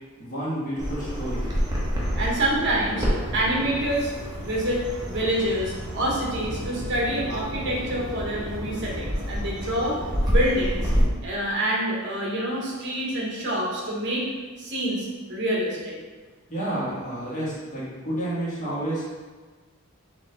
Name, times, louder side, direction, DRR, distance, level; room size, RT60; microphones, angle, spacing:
voice 1, 0.2-1.5 16.5-19.1, right 1 dB, 35° left, -8 dB, 1.4 m, -30 dB
Bird vocalization bird call bird song, 0.8-11.0, equal, 20° right, 0.8 m, -29 dB
voice 2, 2.2-3.1 3.3-4.1 4.4-10.9 11.2-14.3 14.6-15.9, right 1 dB, 55° right, -3 dB, 1.1 m, -27 dB
4.2 x 2.8 x 3.7 m, 1.4 s
head